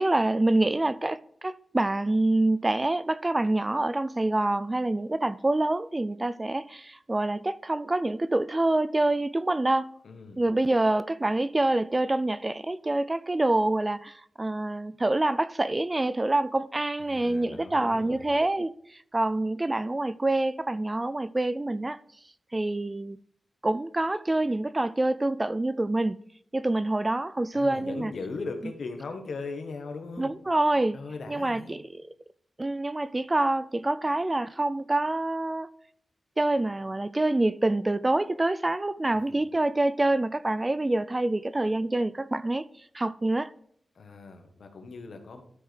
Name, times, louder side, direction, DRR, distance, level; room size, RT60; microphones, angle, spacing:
voice 1, 0.0-9.9 10.4-22.0 22.5-23.2 23.6-26.2 26.5-28.1 30.2-31.0 31.3-31.9 32.6-35.7 36.4-42.7 42.9-43.5, right 2 dB, 20° right, 0.3 m, -26 dB
voice 2, 10.0-10.4 17.1-18.3 27.5-30.3 30.9-31.8 39.1-39.4 43.9-45.4, left 4 dB, 70° left, 1.6 m, -39 dB
12.5 x 5.0 x 4.5 m
wide cardioid pair, 125°, 0 cm